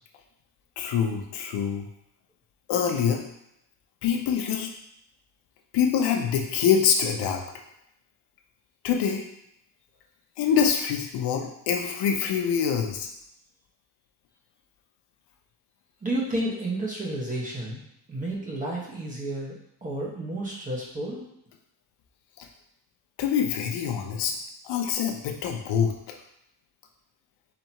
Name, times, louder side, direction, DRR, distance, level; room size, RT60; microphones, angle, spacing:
voice 1, 0.8-1.9 2.7-3.2 4.0-4.7 5.7-7.4 8.8-9.2 10.4-13.1 22.4-22.5 23.2-24.4 24.6-26.2, left 7 dB, 60° left, 3 dB, 0.7 m, -25 dB
voice 2, 16.0-17.8 18.1-21.3, right 1 dB, 20° right, -3 dB, 0.9 m, -31 dB
4.2 x 2.8 x 4.4 m, 0.78 s
cardioid pair, 170°, 45 cm